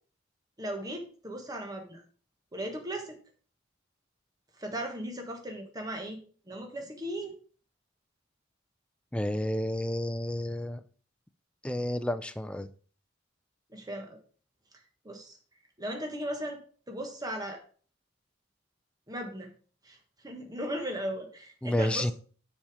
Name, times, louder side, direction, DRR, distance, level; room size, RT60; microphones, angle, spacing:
voice 1, 0.6-2.0 2.5-3.2 4.6-6.2 6.5-7.4 13.7-14.2 15.0-15.4 15.8-16.6 16.9-17.6 19.1-19.5 19.8-20.0 20.2-22.1, right 1 dB, 20° right, 1.3 m, -37 dB
voice 2, 9.1-10.8 11.6-12.7 21.6-22.1, left 1 dB, 5° left, 0.4 m, -30 dB
7.4 x 5.7 x 4.9 m
head